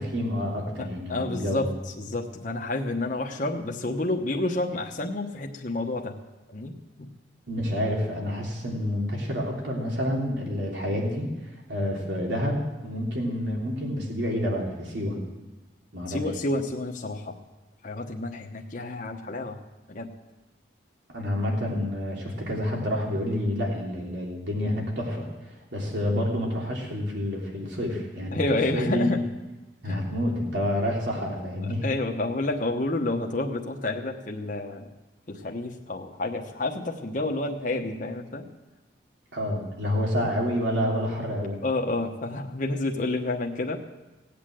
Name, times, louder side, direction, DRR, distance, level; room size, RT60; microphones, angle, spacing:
voice 1, 0.0-1.6 7.5-11.3 11.7-15.2 15.9-16.2 21.1-25.3 25.7-28.4 28.7-29.2 29.8-31.9 39.3-41.6, equal, 80° right, -1 dB, 3.3 m, -28 dB
voice 2, 0.8-6.2 6.5-6.7 7.0-7.1 16.1-17.4 17.8-19.6 19.9-20.1 28.3-29.2 29.8-30.0 31.8-34.9 35.3-38.5 41.6-43.8, left 2 dB, 45° left, 1 dB, 1.1 m, -29 dB
17.5 x 8.6 x 7.7 m, 1.1 s
head